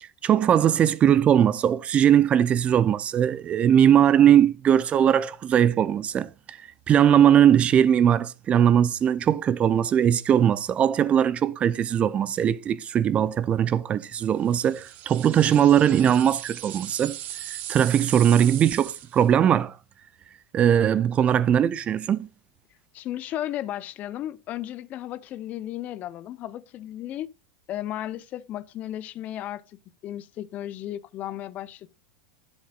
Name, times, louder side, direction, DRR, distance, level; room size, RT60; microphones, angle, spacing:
voice 1, 0.2-6.6 6.9-17.2 17.5-19.7 20.5-22.3, right 9 dB, 30° right, 0.5 m, -20 dB
sound 1, 14.5-19.3, right 12 dB, 45° right, 1.0 m, -38 dB
voice 2, 22.9-27.3 27.7-31.9, left 12 dB, 40° left, 0.6 m, -34 dB
11.0 x 7.3 x 2.4 m
hypercardioid pair, 95°, 4 cm